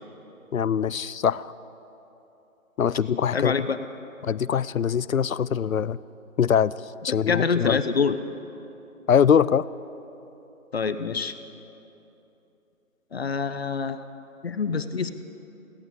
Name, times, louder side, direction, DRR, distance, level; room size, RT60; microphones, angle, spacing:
voice 1, 0.5-1.5 2.8-3.5 4.2-6.0 6.4-6.7 7.0-7.8 9.1-9.7, left 8 dB, 70° left, 19 dB, 0.6 m, -22 dB
voice 2, 3.3-3.8 7.1-8.2 10.7-11.3 13.1-14.0 14.4-15.1, left 5 dB, 45° left, 11 dB, 0.9 m, -26 dB
21.5 x 17.0 x 8.0 m, 3.0 s
figure-of-eight pair, 160°, 43 cm